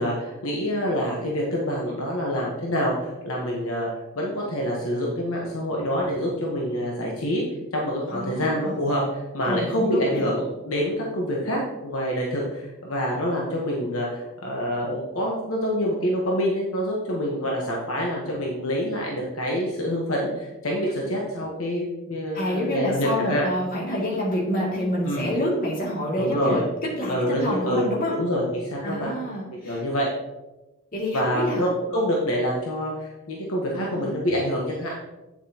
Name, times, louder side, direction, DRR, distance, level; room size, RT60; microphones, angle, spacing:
voice 1, 0.0-7.4 7.7-23.4 25.0-25.3 26.2-26.7 27.1-29.1 29.6-30.1 31.1-35.0, equal, 70° left, -2 dB, 1.2 m, -26 dB
voice 2, 8.1-8.8 9.4-10.3 22.3-28.2 28.8-29.8 30.9-31.7 33.7-34.1, equal, 40° left, -4 dB, 2.4 m, -27 dB
8.5 x 7.2 x 2.9 m, 1.0 s
head